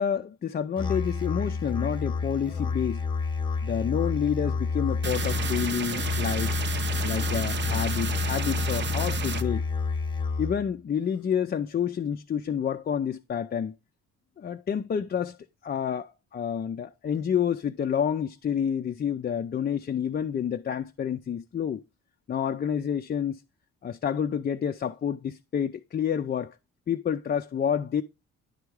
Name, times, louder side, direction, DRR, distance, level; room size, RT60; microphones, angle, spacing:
voice 1, 0.0-3.0 3.6-6.5 7.0-9.6 10.4-13.7 14.4-15.4 15.6-21.8 22.3-23.4 23.8-26.6 26.9-28.0, left 8 dB, 30° left, 0.5 m, -29 dB
Musical instrument, 0.8-10.7, left 4 dB, 15° left, 1.0 m, -29 dB
sound 1, 5.0-9.4, right 6 dB, 35° right, 0.7 m, -32 dB
10.0 x 3.5 x 4.7 m
cardioid pair, 90°, 30 cm